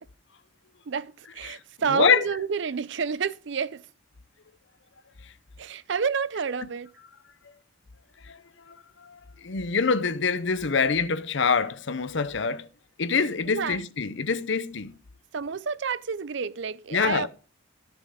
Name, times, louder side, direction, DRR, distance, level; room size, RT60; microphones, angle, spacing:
voice 1, 0.9-3.9 5.6-6.9 13.5-13.8 15.3-17.3, right 6 dB, 60° right, 0.5 m, -29 dB
voice 2, 1.9-2.3 8.2-8.4 8.7-12.7 13.0-15.0 16.9-17.3, left 5 dB, 60° left, 0.7 m, -25 dB
13.0 x 7.0 x 5.0 m
head